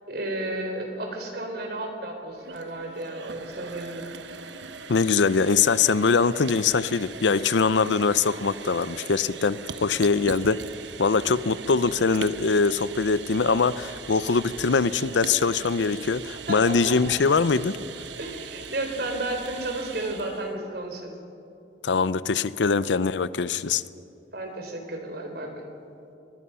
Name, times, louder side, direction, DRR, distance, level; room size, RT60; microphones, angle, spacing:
voice 1, 0.1-4.2 16.5-16.9 18.2-21.1 24.3-25.6, right 1 dB, 60° right, 4 dB, 3.5 m, -33 dB
sound 1, 2.3-20.5, right 5 dB, 80° right, 1.0 m, -40 dB
voice 2, 4.9-10.6 11.0-17.8 21.8-23.8, left 4 dB, 80° left, 16 dB, 0.6 m, -22 dB
24.0 x 20.5 x 5.6 m, 2.7 s
head